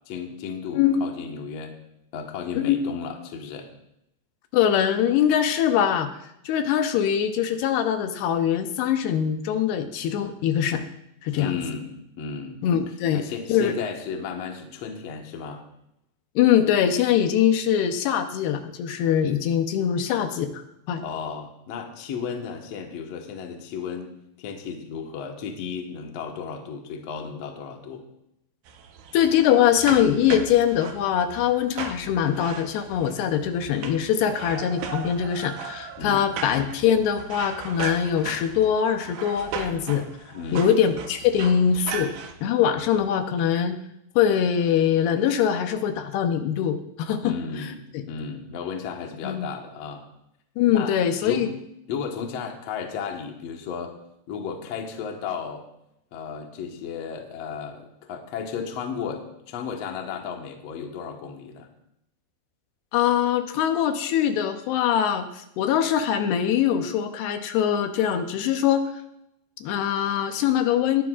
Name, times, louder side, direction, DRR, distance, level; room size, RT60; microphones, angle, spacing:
voice 1, 0.1-1.8 2.1-3.7 11.3-12.6 13.1-15.6 21.0-24.1 24.4-28.0 36.0-36.3 40.3-40.7 47.2-47.8 48.1-50.0 50.7-51.6 51.9-54.0 54.3-55.7 56.1-61.7, left 6 dB, 60° left, 2 dB, 1.8 m, -34 dB
voice 2, 4.5-6.1 6.5-10.8 11.2-11.6 12.6-13.2 13.5-13.7 16.4-20.5 20.9-21.0 29.1-40.1 40.5-42.1 42.4-43.8 44.2-47.3 47.9-48.0 49.2-49.5 50.6-51.5 62.9-68.9 69.6-71.0, left 9 dB, 80° left, 7 dB, 2.9 m, -22 dB
sound 1, 28.7-42.3, right 6 dB, 75° right, 3.0 m, -37 dB
20.5 x 11.0 x 2.5 m, 0.80 s
omnidirectional pair, 4.7 m